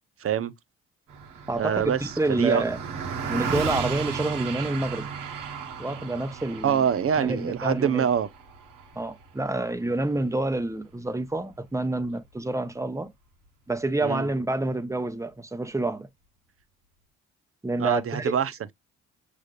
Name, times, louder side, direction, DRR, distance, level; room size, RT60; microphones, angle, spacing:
voice 1, 0.2-0.5 1.6-2.0 2.3-2.6 6.6-8.3 14.0-14.3 17.8-18.7, right 8 dB, 45° right, 0.7 m, -25 dB
Car passing by, 1.1-10.7, right 6 dB, 85° right, 1.5 m, -35 dB
voice 2, 1.5-2.8 3.2-5.1 5.8-6.8 7.2-8.1 8.9-13.1 13.7-16.1 17.6-18.3, right 2 dB, 10° right, 0.9 m, -28 dB
6.3 x 3.3 x 2.4 m
supercardioid pair, 65°, 32 cm